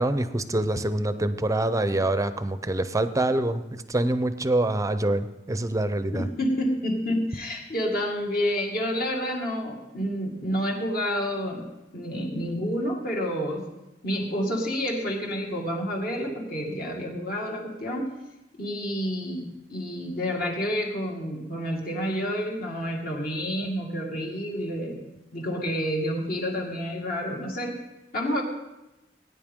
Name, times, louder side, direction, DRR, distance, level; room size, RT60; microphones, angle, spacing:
voice 1, 0.0-6.3, right 1 dB, 20° right, 12 dB, 0.6 m, -25 dB
voice 2, 6.1-13.7 14.0-18.1 18.6-25.0 25.3-27.8 28.1-28.4, equal, 55° left, 0 dB, 2.1 m, -29 dB
18.0 x 9.4 x 3.7 m, 0.98 s
head